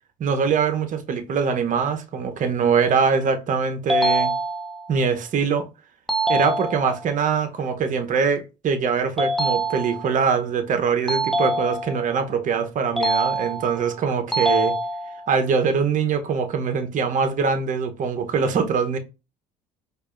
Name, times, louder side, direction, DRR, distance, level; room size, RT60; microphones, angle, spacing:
voice 1, 0.2-4.3 4.9-5.7 6.3-14.8 15.3-19.0, right 6 dB, 45° right, 0.8 m, -23 dB
sound 1, 3.9-4.9 6.1-7.1 9.2-10.2 11.1-12.1 13.0-13.9 14.3-15.3, right 1 dB, ahead, 0.8 m, -24 dB
4.6 x 2.5 x 2.4 m
supercardioid pair, 75°, 18 cm